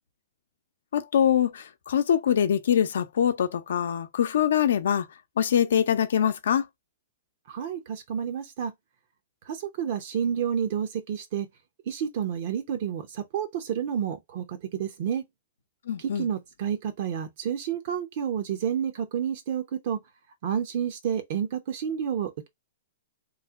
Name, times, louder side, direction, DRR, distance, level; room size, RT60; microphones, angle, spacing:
voice 1, 0.9-5.1 5.4-6.7 15.9-16.3, left 9 dB, 75° left, 0.6 m, -24 dB
voice 2, 7.5-8.7 9.5-11.5 11.9-15.2 16.0-20.0 20.4-22.5, right 8 dB, 55° right, 0.7 m, -30 dB
3.1 x 2.1 x 3.5 m
hypercardioid pair, 140°, 0 cm